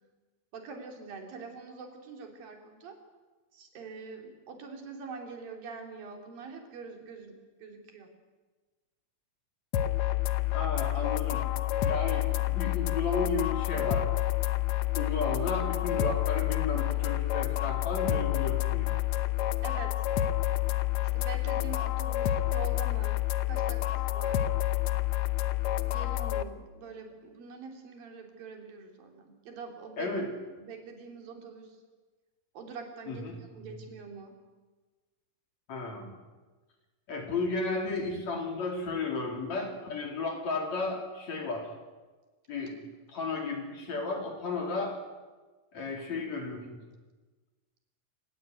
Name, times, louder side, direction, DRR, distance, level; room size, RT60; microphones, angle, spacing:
voice 1, 0.5-3.0 3.5-8.1 19.6-20.1 21.0-24.5 25.8-30.1 30.6-31.8 32.5-34.4, right 4 dB, 75° right, 4 dB, 4.9 m, -44 dB
sound 1, 9.7-26.4, left 14 dB, 75° left, 1.6 m, -29 dB
voice 2, 10.5-11.5 11.8-14.1 14.9-19.0 30.0-30.3 33.1-33.6 35.7-36.1 37.1-41.7 42.5-45.0 45.7-46.8, left 3 dB, 50° left, 2 dB, 4.6 m, -34 dB
28.0 x 16.5 x 9.4 m, 1.3 s
omnidirectional pair, 4.2 m